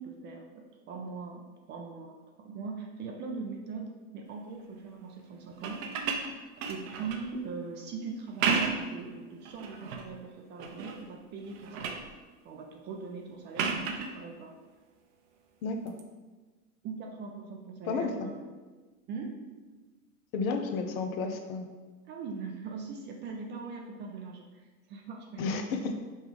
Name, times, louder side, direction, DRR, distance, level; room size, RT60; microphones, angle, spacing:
voice 1, 0.0-5.8 6.7-12.0 12.4-14.5 16.8-18.4 19.1-19.4 22.1-25.6, right 4 dB, 25° right, 1 dB, 0.3 m, -41 dB
sound 1, 5.5-7.3 8.2-9.0 9.5-10.1 10.6-11.1 11.4-12.1 13.6-14.1 15.9-16.0, right 5 dB, 65° right, 0.7 m, -32 dB
voice 2, 15.6-15.9 17.9-18.1 20.3-21.7 25.4-25.9, left 4 dB, 70° left, 5 dB, 0.7 m, -31 dB
5.3 x 2.3 x 3.2 m, 1.3 s
hypercardioid pair, 95°, 43 cm